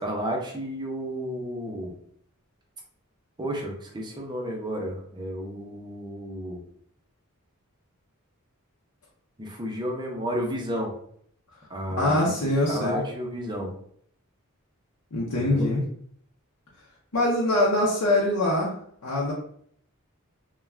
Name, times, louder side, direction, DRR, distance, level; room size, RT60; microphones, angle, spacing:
voice 1, 0.0-1.9 3.4-6.6 9.4-10.9 11.7-12.2 12.4-13.7 15.3-15.7, equal, 20° right, -1 dB, 0.6 m, -32 dB
voice 2, 12.0-13.0 15.1-15.8 17.1-18.7 19.0-19.3, left 1 dB, 85° left, -4 dB, 0.6 m, -23 dB
2.4 x 2.2 x 3.2 m, 0.64 s
head